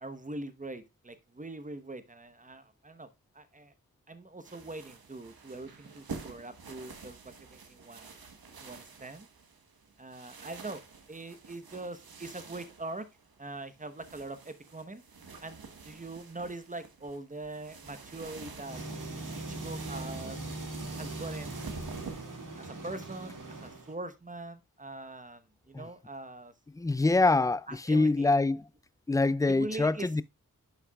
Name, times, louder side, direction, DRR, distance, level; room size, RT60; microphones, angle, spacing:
voice 1, 0.0-3.1 3.3-3.7 4.1-8.1 8.6-9.3 10.0-10.8 11.1-13.1 13.4-15.0 15.4-18.8 19.3-20.4 21.0-21.6 22.6-26.5 27.7-28.3 29.5-30.2, right 2 dB, 20° right, 1.0 m, -42 dB
sound 1, 4.4-22.4, right 4 dB, 85° right, 1.3 m, -48 dB
sound 2, 18.6-23.9, right 2 dB, 60° right, 2.0 m, -40 dB
voice 2, 26.8-28.6 29.1-30.2, left 3 dB, 10° left, 0.3 m, -25 dB
11.0 x 5.7 x 2.3 m
wide cardioid pair, 60°, 35 cm